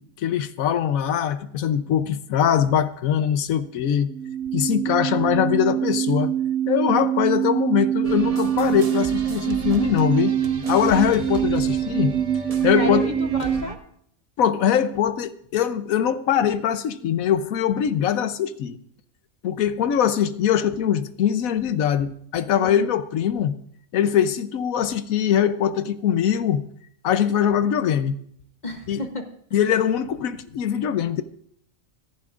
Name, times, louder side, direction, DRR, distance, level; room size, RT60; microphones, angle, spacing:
voice 1, 0.0-4.1 4.5-6.3 6.7-10.4 10.7-12.1 12.6-13.1 14.4-18.8 19.4-23.5 23.9-26.6 27.0-28.2 28.9-29.0 29.5-31.2, left 9 dB, 85° left, 13 dB, 1.2 m, -22 dB
sound 1, 4.0-13.7, right 9 dB, 90° right, 1.1 m, -24 dB
sound 2, 8.0-13.8, right 3 dB, 30° right, 0.8 m, -36 dB
voice 2, 12.7-13.8 22.6-22.9 28.6-29.2 29.5-29.6, left 2 dB, 35° left, 5 dB, 1.0 m, -31 dB
23.5 x 11.0 x 2.5 m, 0.66 s
omnidirectional pair, 1.4 m